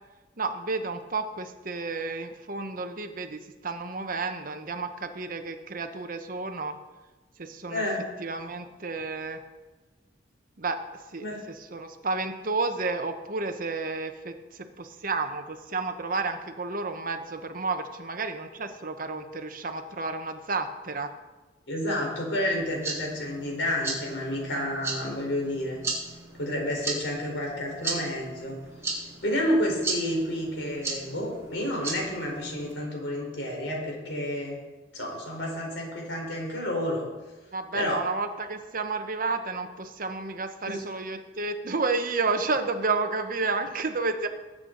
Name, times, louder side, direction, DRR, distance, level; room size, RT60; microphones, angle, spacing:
voice 1, 0.4-6.8 7.4-7.8 8.2-9.4 10.6-10.8 11.1-21.1 37.5-44.3, right 3 dB, 50° right, 7 dB, 1.0 m, -31 dB
voice 2, 7.7-8.1 11.2-11.4 21.7-25.8 26.4-28.5 29.2-34.6 34.9-37.1 37.7-38.0 40.7-40.8, left 1 dB, 90° left, -1 dB, 4.3 m, -30 dB
sound 1, 22.5-32.7, right 3 dB, 15° right, 3.4 m, -37 dB
19.5 x 8.7 x 4.0 m, 1.2 s
head